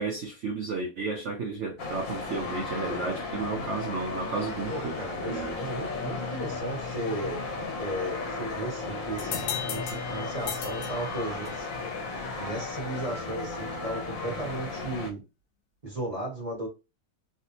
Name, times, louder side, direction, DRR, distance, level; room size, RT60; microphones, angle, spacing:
voice 1, 0.0-5.0 5.3-5.7, right 4 dB, 85° right, 0.6 m, -33 dB
sound 1, 1.8-15.1, left 3 dB, 60° left, 1.0 m, -35 dB
voice 2, 4.7-7.4 7.8-11.7 12.3-15.2 15.8-16.7, right 1 dB, 25° right, 0.9 m, -35 dB
sound 2, 9.2-11.8, left 9 dB, 85° left, 1.3 m, -37 dB
3.4 x 2.5 x 2.8 m
omnidirectional pair, 2.0 m